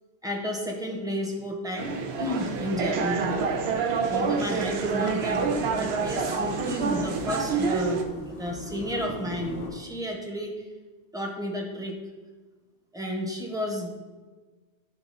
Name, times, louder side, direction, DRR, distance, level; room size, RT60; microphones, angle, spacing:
voice 1, 0.2-3.5 4.1-10.6 11.1-12.0 12.9-13.9, equal, 5° right, 0 dB, 1.0 m, -32 dB
sound 1, 1.8-8.0, right 5 dB, 70° right, 0.9 m, -27 dB
sound 2, 2.2-9.7, left 2 dB, 80° left, 2.0 m, -40 dB
11.5 x 3.9 x 4.1 m, 1.3 s
omnidirectional pair, 1.1 m